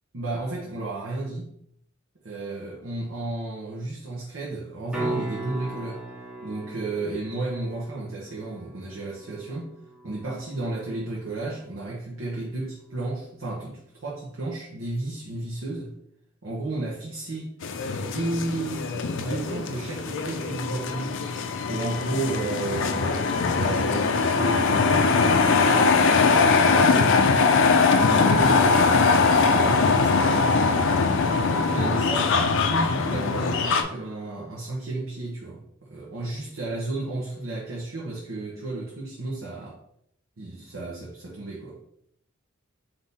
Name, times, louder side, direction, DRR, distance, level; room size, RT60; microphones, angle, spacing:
voice 1, 0.1-1.5 2.2-6.0 6.4-9.7 10.0-15.9 16.4-17.5 17.9-18.9 19.2-21.2 21.6-23.1 23.4-25.1 25.7-26.0 26.4-30.7 31.4-39.8 40.4-41.8, right 2 dB, 65° right, -4 dB, 0.8 m, -33 dB
sound 1, 4.9-10.9 15.6-15.7, right 2 dB, 5° right, 0.9 m, -37 dB
sound 2, 17.6-33.8, left 4 dB, 60° left, 0.4 m, -21 dB
3.6 x 2.7 x 4.0 m, 0.71 s
head